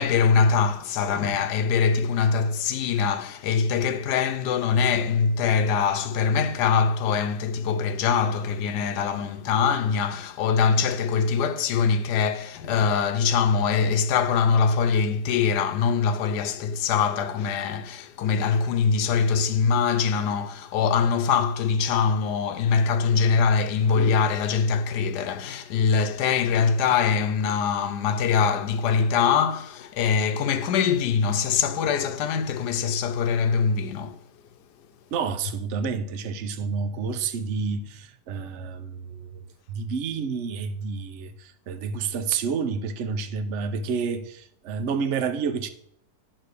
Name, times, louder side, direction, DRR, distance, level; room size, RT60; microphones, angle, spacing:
voice 1, 0.0-34.2, left 6 dB, 85° left, 1.3 m, -23 dB
voice 2, 35.1-45.7, right 5 dB, 55° right, 0.9 m, -29 dB
11.0 x 4.2 x 6.6 m
omnidirectional pair, 1.7 m